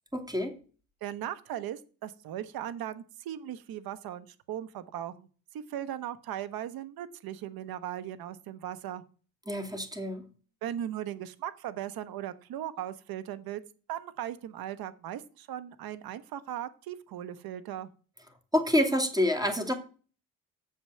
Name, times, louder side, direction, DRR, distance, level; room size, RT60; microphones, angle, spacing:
voice 1, 0.1-0.6 9.5-10.2 18.5-19.7, left 1 dB, 10° right, 6 dB, 2.4 m, -27 dB
voice 2, 1.0-5.3 5.5-9.0 10.6-13.6 13.9-17.9, right 11 dB, 55° right, 14 dB, 1.1 m, -38 dB
7.2 x 5.6 x 7.5 m, 0.38 s
hypercardioid pair, 65°, 42 cm